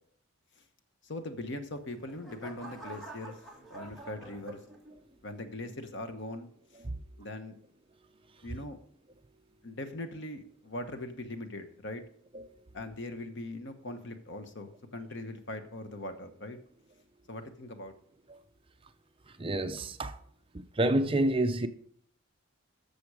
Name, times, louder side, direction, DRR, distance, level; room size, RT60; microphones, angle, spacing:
voice 1, 1.0-3.4 3.7-4.6 5.2-6.5 7.2-7.6 8.4-8.8 9.6-12.0 12.7-16.6 17.3-17.9, left 2 dB, 55° left, 1.1 m, -40 dB
sound 1, 1.6-5.1 5.7-6.0, right 2 dB, ahead, 2.2 m, -48 dB
voice 2, 19.3-20.2 20.5-21.7, right 1 dB, 25° right, 0.6 m, -29 dB
13.0 x 6.9 x 4.9 m
head